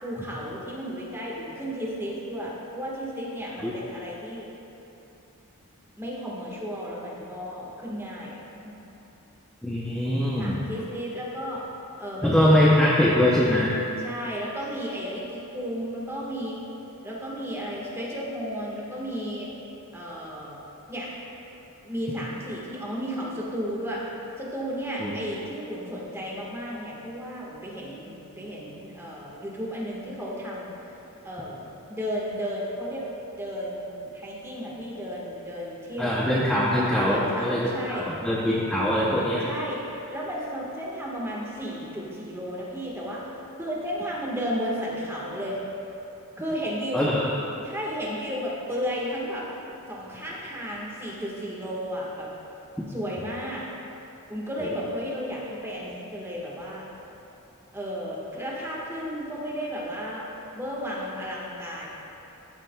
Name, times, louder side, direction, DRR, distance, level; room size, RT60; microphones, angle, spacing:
voice 1, 0.0-4.5 6.0-8.4 8.6-8.7 10.3-11.6 12.0-13.1 14.0-16.6 17.0-19.5 19.9-20.6 20.9-21.1 21.8-24.0 24.4-30.7 31.2-33.1 33.4-36.3 37.0-38.1 39.4-39.8 40.1-43.2 43.6-45.6 46.4-47.2 47.6-49.4 49.9-52.3 52.9-53.6 54.3-56.9 57.7-60.2 60.5-61.9, equal, 10° right, -5 dB, 1.4 m, -33 dB
voice 2, 9.6-10.6 12.2-13.7 25.0-25.1 36.0-39.5 46.9-47.2 54.6-54.7, left 1 dB, 5° left, -7 dB, 0.6 m, -22 dB
14.0 x 7.5 x 2.3 m, 3.0 s
head